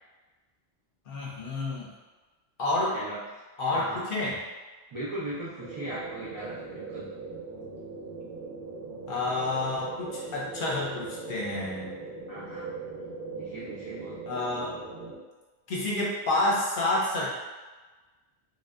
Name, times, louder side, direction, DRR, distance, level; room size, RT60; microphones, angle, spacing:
voice 1, 1.1-1.9 2.6-2.9 3.6-4.3 9.1-11.9 14.3-14.7 15.7-17.3, left 2 dB, 60° left, -5 dB, 0.7 m, -29 dB
voice 2, 4.9-7.1 12.3-12.7 13.4-14.1, right 1 dB, 50° right, -9 dB, 0.3 m, -38 dB
sound 1, 5.6-15.2, right 4 dB, 85° right, 0.9 m, -40 dB
2.6 x 2.1 x 2.3 m, 1.2 s
omnidirectional pair, 1.1 m